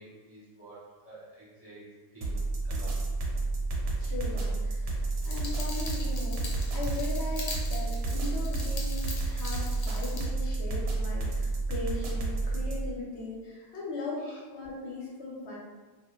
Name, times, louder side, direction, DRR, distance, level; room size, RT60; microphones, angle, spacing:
voice 1, 0.0-3.0 14.2-14.4, right 1 dB, 35° right, -10 dB, 0.7 m, -50 dB
sound 1, 2.2-12.9, right 2 dB, 65° right, 0.8 m, -30 dB
voice 2, 4.0-14.3 14.5-15.5, left 2 dB, 55° left, -5 dB, 0.9 m, -39 dB
sound 2, 5.2-10.2, left 3 dB, 80° left, 1.1 m, -41 dB
2.4 x 2.1 x 2.9 m, 1.3 s
omnidirectional pair, 1.5 m